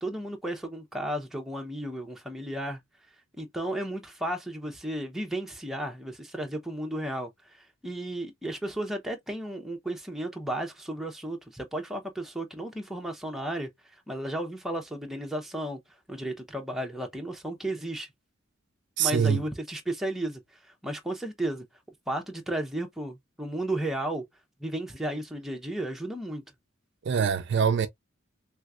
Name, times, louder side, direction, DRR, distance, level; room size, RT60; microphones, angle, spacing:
voice 1, 0.0-2.8 3.4-15.8 16.1-18.1 19.0-21.6 22.1-24.2 24.6-26.4, right 1 dB, ahead, 0.7 m, -34 dB
voice 2, 19.0-19.4 27.0-27.9, right 7 dB, 55° right, 0.4 m, -24 dB
3.3 x 3.1 x 2.4 m
head